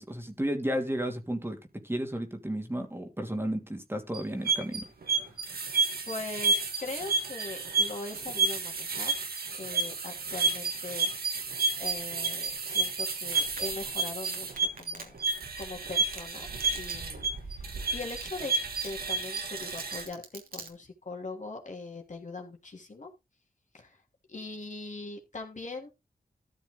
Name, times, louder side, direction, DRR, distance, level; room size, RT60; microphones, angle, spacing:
voice 1, 0.0-1.6 1.8-4.9, equal, 15° right, 2.7 m, -33 dB
sound 1, 4.1-20.0, right 4 dB, 90° right, 2.3 m, -31 dB
voice 2, 6.0-9.1 9.6-11.1 11.8-15.1 15.6-16.5 16.7-18.5 18.8-23.1 23.7-24.0 24.3-25.9, left 3 dB, 55° left, 3.0 m, -41 dB
Domestic sounds home sounds, 13.3-13.7 14.3-15.3 15.6-15.7 16.1-16.3 16.6-17.0 17.2-17.3 17.7-17.8 18.0-18.6 18.8-20.7, right 4 dB, 70° right, 3.0 m, -42 dB
14.0 x 6.3 x 3.9 m
cardioid pair, 60°, 15 cm